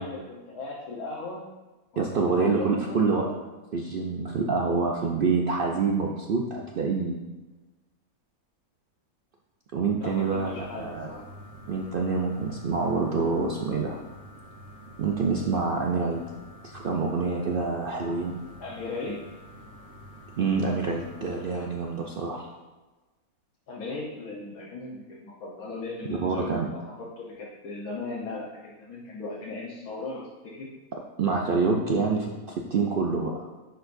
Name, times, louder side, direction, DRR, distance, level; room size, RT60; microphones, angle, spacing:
voice 1, 0.0-1.4 1.9-3.0 4.5-5.0 10.0-11.3 18.6-19.2 23.7-30.3 30.5-30.7, left 3 dB, 75° left, -4 dB, 1.4 m, -38 dB
voice 2, 2.0-3.3 3.7-7.2 9.7-10.5 10.8-11.1 11.7-14.0 15.0-16.2 16.6-18.4 20.4-22.5 26.1-26.7 31.2-33.5, right 4 dB, 70° right, 0 dB, 0.5 m, -26 dB
sound 1, 10.0-22.5, right 1 dB, 45° right, 1.4 m, -47 dB
10.5 x 4.6 x 2.6 m, 1.2 s
omnidirectional pair, 1.6 m